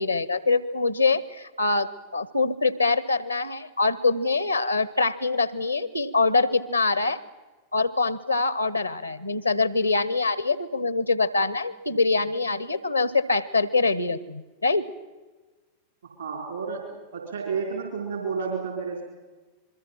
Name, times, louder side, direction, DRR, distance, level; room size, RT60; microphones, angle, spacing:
voice 1, 0.0-7.2 7.7-14.9, left 3 dB, 85° left, 18 dB, 1.0 m, -24 dB
voice 2, 16.2-19.0, right 5 dB, 75° right, 1 dB, 4.2 m, -31 dB
27.0 x 22.0 x 5.8 m, 1.2 s
figure-of-eight pair, 90°, 0 cm